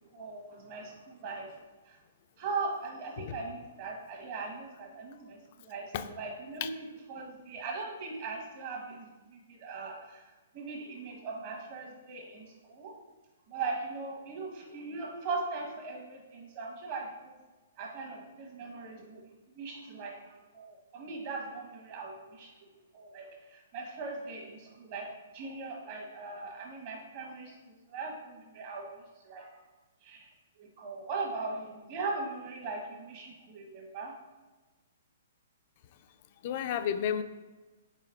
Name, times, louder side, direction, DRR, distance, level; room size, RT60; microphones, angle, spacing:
voice 1, 0.1-1.5 2.4-10.2 10.5-12.9 13.5-17.3 17.8-19.2 19.5-22.5 22.9-28.9 29.2-29.6 30.0-30.2 30.6-34.1, right 3 dB, 45° right, -1 dB, 1.2 m, -39 dB
voice 2, 36.4-37.2, left 9 dB, 45° left, 10 dB, 0.3 m, -31 dB
4.5 x 3.4 x 3.5 m, 1.2 s
hypercardioid pair, 135°, 0 cm